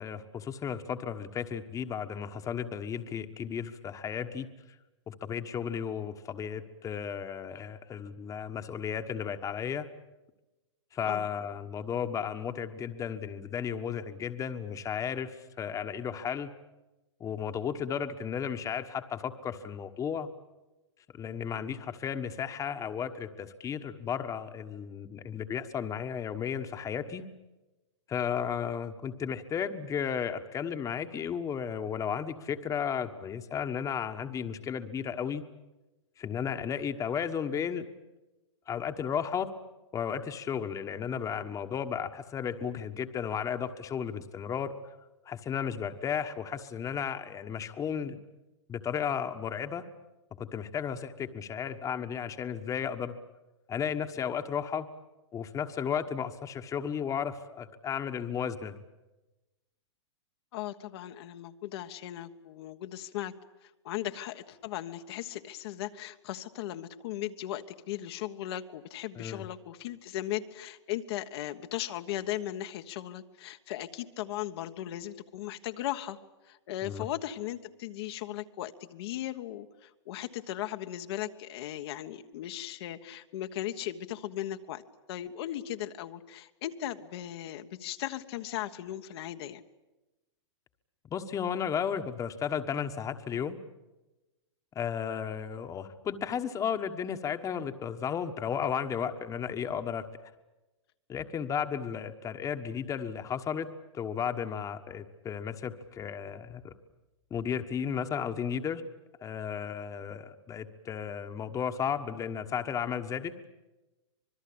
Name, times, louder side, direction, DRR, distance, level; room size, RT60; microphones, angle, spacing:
voice 1, 0.0-4.5 5.1-9.9 10.9-16.5 17.2-20.3 21.2-27.2 28.1-35.4 36.2-37.9 38.7-39.5 39.9-44.7 45.2-48.2 48.7-49.9 50.4-53.2 53.7-54.9 55.3-58.8 69.1-69.4 76.8-77.0 91.1-93.6 94.7-100.0 101.1-103.7 103.9-106.7 107.3-108.8 109.2-113.3, left 7 dB, 20° left, 8 dB, 1.4 m, -34 dB
voice 2, 60.5-63.3 63.6-76.2 76.4-84.8 85.1-89.6, left 13 dB, 60° left, 6 dB, 1.4 m, -37 dB
26.0 x 20.5 x 8.7 m, 1.1 s
hypercardioid pair, 130°, 15 cm